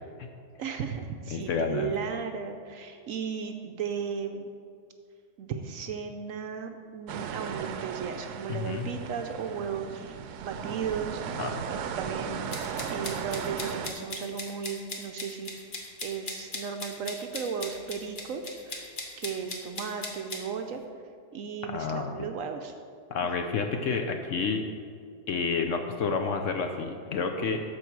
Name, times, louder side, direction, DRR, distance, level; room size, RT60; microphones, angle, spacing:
voice 1, 0.6-4.5 5.4-10.1 10.4-15.5 16.0-20.8 21.3-22.7 23.4-23.5, right 6 dB, 65° right, 5 dB, 0.9 m, -35 dB
voice 2, 1.3-1.9 8.5-8.9 11.3-11.6 21.7-22.3 23.1-24.6 25.3-27.6, left 5 dB, 65° left, 5 dB, 0.8 m, -30 dB
sound 1, 7.1-13.9, right 7 dB, 85° right, 1.2 m, -36 dB
sound 2, 12.5-20.4, left 2 dB, 35° left, 1.1 m, -38 dB
13.0 x 4.9 x 4.6 m, 2.3 s
omnidirectional pair, 1.7 m